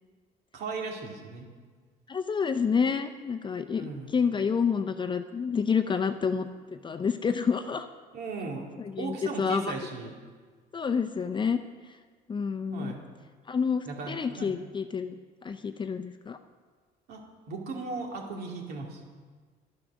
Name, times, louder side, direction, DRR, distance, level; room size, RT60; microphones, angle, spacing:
voice 1, 0.5-1.4 3.7-4.1 8.1-10.1 12.7-13.0 13.9-14.6 17.1-19.0, right 3 dB, 70° right, 0 dB, 2.6 m, -37 dB
voice 2, 2.1-7.9 8.8-9.7 10.7-11.6 12.3-12.9 13.5-15.2 15.4-16.4, left 6 dB, 30° left, 7 dB, 0.6 m, -29 dB
11.0 x 9.9 x 6.2 m, 1.5 s
cardioid pair, 110°, 17 cm